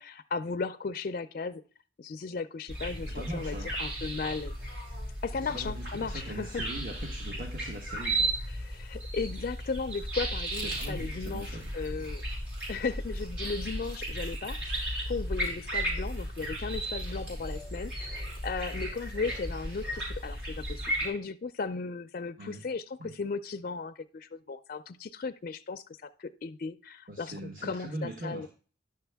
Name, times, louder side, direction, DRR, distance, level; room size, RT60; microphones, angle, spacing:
voice 1, 0.0-1.6 2.0-4.6 5.2-6.6 8.5-12.2 12.7-27.3 27.6-28.5, left 4 dB, 50° left, 7 dB, 0.4 m, -36 dB
sound 1, 2.7-21.1, right 1 dB, 70° right, 5.3 m, -35 dB
voice 2, 3.1-3.7 5.4-8.4 10.6-11.7 22.4-22.6 23.0-23.1 27.1-28.5, right 1 dB, 50° right, 2 dB, 1.3 m, -41 dB
10.5 x 6.7 x 3.4 m, 0.40 s
head